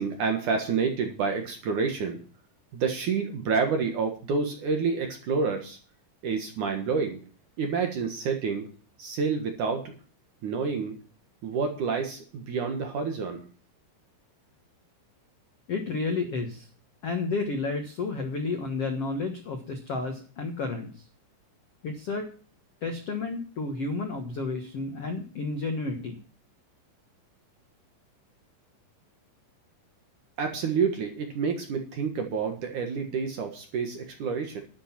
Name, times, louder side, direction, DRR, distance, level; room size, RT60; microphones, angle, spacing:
voice 1, 0.0-2.2 2.7-5.8 6.2-7.2 7.6-8.7 9.0-9.9 10.4-10.9 11.4-13.4 30.4-34.6, right 5 dB, 60° right, 4 dB, 2.2 m, -28 dB
voice 2, 15.7-16.7 17.0-21.0 21.8-22.3 22.8-26.2, left 3 dB, 85° left, 4 dB, 1.3 m, -31 dB
12.0 x 10.5 x 6.0 m, 0.40 s
omnidirectional pair, 5.5 m